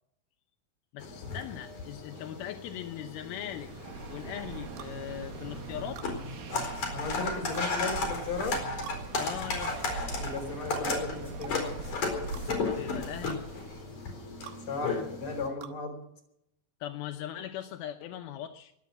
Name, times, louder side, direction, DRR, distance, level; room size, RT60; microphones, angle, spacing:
voice 1, 0.9-3.7 4.1-6.0 9.2-9.8 12.6-13.4 16.8-18.7, left 11 dB, 85° left, 5 dB, 2.9 m, -40 dB
sound 1, 1.0-15.5, left 4 dB, 50° left, 5.7 m, -35 dB
sound 2, 3.3-14.1, right 3 dB, 70° right, 3.3 m, -41 dB
sound 3, 4.8-5.0 6.0-6.1 7.5-7.7 8.8-9.0 9.6-9.8 10.7-10.9 11.4-11.6 12.3-12.5 13.3-13.4 14.4-14.6 15.6-15.8, right 11 dB, 85° right, 3.1 m, -45 dB
voice 2, 6.9-8.6 10.2-11.8 14.7-16.0, left 3 dB, 35° left, 4 dB, 4.9 m, -35 dB
23.0 x 9.5 x 6.3 m, 0.77 s
omnidirectional pair, 4.3 m